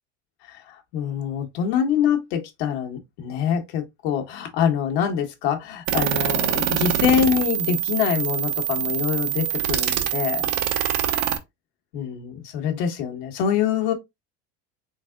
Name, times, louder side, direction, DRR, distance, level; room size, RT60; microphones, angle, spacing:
voice 1, 0.4-10.5 11.9-13.9, left 8 dB, 85° left, 1.3 m, -25 dB
sound 1, 5.9-11.4, right 10 dB, 80° right, 0.8 m, -24 dB
3.9 x 3.7 x 2.2 m
cardioid pair, 140°, 31 cm